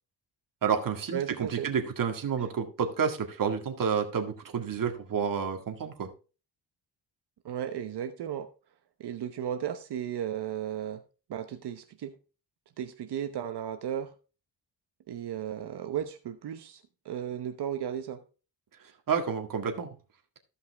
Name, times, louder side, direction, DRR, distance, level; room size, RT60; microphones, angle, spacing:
voice 1, 0.6-6.1 19.1-19.9, right 6 dB, 50° right, 1.9 m, -30 dB
voice 2, 1.1-1.7 7.4-8.5 9.0-11.0 11.3-12.1 12.8-14.1 15.1-18.2, right 9 dB, 65° right, 1.0 m, -35 dB
15.0 x 5.5 x 3.4 m
cardioid pair, 125°, 43 cm